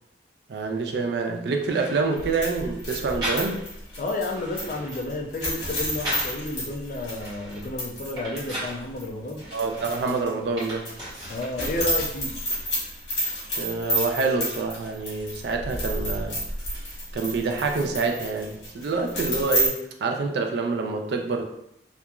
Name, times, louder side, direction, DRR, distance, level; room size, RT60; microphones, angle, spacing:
voice 1, 0.5-3.6 9.5-10.9 13.6-16.4 17.1-21.4, right 4 dB, 65° right, 3 dB, 0.3 m, -27 dB
sound 1, 1.6-2.4 3.2-3.8 4.2-6.5 6.9-8.8 9.4-11.5 11.8-12.6, right 1 dB, 25° right, 1.1 m, -36 dB
sound 2, 2.2-8.1 8.4-8.5 9.0-10.3 10.6-19.7, equal, 75° left, 1.2 m, -30 dB
voice 2, 4.0-9.5 11.3-12.3, left 2 dB, 45° left, 2 dB, 0.3 m, -31 dB
2.9 x 2.4 x 2.3 m, 0.78 s
head